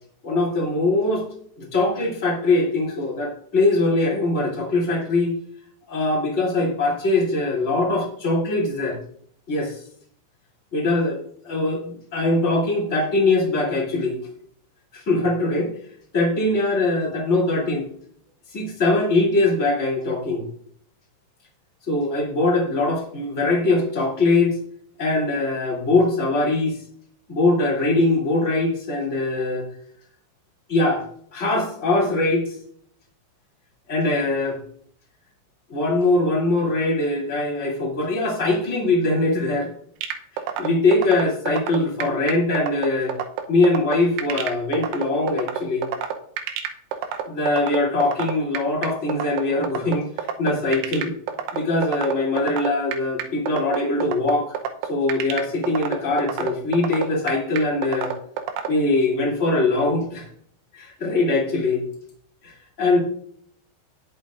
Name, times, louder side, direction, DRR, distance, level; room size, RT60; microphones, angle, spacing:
voice 1, 0.2-1.2 1.6-5.3 5.9-9.0 9.5-9.8 10.7-11.2 11.4-14.2 14.9-15.7 16.1-17.9 18.5-20.4 21.9-24.6 25.0-26.8 27.3-29.7 30.7-31.0 31.3-32.5 33.9-34.6 35.7-39.7 40.3-43.1 43.5-45.9 47.2-51.1 51.5-54.5 54.9-58.1 58.7-60.3 60.7-61.8 62.4-63.0, left 2 dB, 20° left, -4 dB, 2.1 m, -22 dB
sound 1, 40.0-58.7, right 9 dB, 80° right, 3.2 m, -28 dB
19.0 x 6.4 x 2.6 m, 0.62 s
omnidirectional pair, 5.8 m